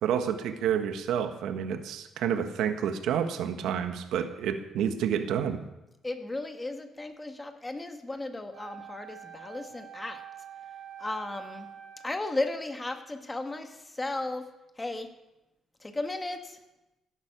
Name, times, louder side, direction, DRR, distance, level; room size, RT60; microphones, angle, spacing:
voice 1, 0.0-5.6, right 8 dB, 85° right, 7 dB, 1.5 m, -29 dB
voice 2, 6.0-10.2 11.0-11.7 12.0-14.5 14.8-15.1 15.8-16.6, left 2 dB, 20° left, 6 dB, 1.9 m, -35 dB
Wind instrument woodwind instrument, 8.5-12.3, right 9 dB, 70° right, 4.4 m, -46 dB
15.5 x 11.5 x 6.2 m, 0.96 s
cardioid pair, 90°, 0 cm